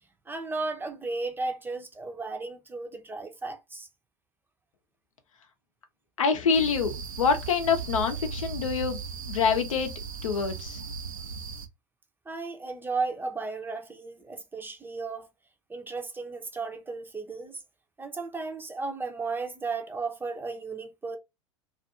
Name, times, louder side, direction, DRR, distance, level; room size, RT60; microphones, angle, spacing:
voice 1, 0.3-3.9 12.3-15.3 15.7-17.6 18.0-21.2, right 3 dB, 10° right, 0.5 m, -34 dB
voice 2, 6.2-9.0 9.3-9.9 10.2-10.8, left 5 dB, 80° left, 0.6 m, -26 dB
sound 1, 6.5-11.7, right 5 dB, 85° right, 0.4 m, -37 dB
2.5 x 2.5 x 2.4 m
hypercardioid pair, 85°, 17 cm